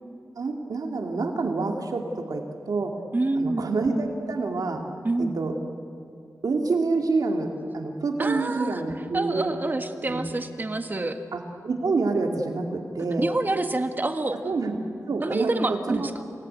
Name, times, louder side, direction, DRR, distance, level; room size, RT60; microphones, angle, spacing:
voice 1, 0.4-2.9 3.4-4.8 5.2-5.5 6.4-9.5 10.1-10.3 11.3-13.3 14.4-14.8 15.1-16.1, right 3 dB, 80° right, 3 dB, 2.1 m, -27 dB
voice 2, 3.1-3.7 5.0-5.4 8.2-8.8 9.1-11.2 13.2-14.4 15.2-16.1, right 2 dB, 30° right, 7 dB, 1.5 m, -27 dB
27.5 x 18.5 x 9.6 m, 2.6 s
wide cardioid pair, 130°, 6 cm